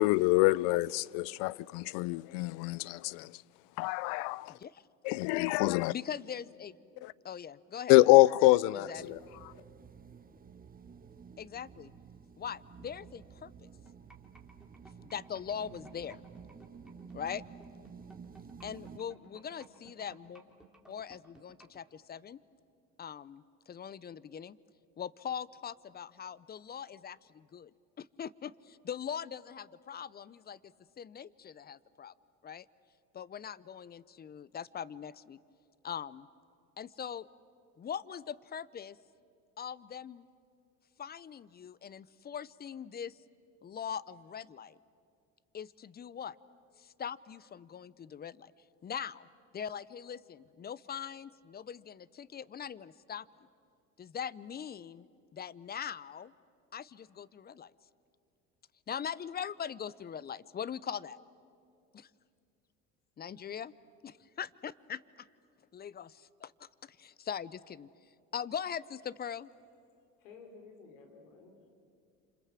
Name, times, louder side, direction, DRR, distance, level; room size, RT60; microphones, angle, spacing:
voice 1, 0.0-3.3 3.8-4.5 5.0-5.9 7.0-7.1 7.9-9.2, left 21 dB, 60° left, 0.6 m, -25 dB
voice 2, 4.5-4.8 5.9-6.8 7.2-8.0 8.4-9.1 11.4-11.9 12.4-13.7 15.0-16.2 17.1-17.4 18.6-20.4 20.9-22.4 23.0-24.6 25.0-27.7 28.0-32.1 32.4-32.7 33.1-35.4 35.8-36.3 36.8-37.3 37.8-39.0 39.6-40.3 41.0-43.2 43.6-44.8 45.5-46.4 46.8-48.5 48.8-49.3 49.5-53.3 54.0-55.0 55.3-56.3 56.7-57.7 58.9-61.2 61.9-62.1 63.2-63.7 64.0-65.3 65.7-67.9 68.3-69.5, left 8 dB, 25° left, 0.7 m, -41 dB
sound 1, 8.9-19.0, right 6 dB, 20° right, 1.3 m, -52 dB
sound 2, 13.9-21.8, right 3 dB, ahead, 3.2 m, -57 dB
voice 3, 70.2-71.7, left 4 dB, 80° left, 4.4 m, -53 dB
29.0 x 27.0 x 7.6 m
hypercardioid pair, 85°, 38 cm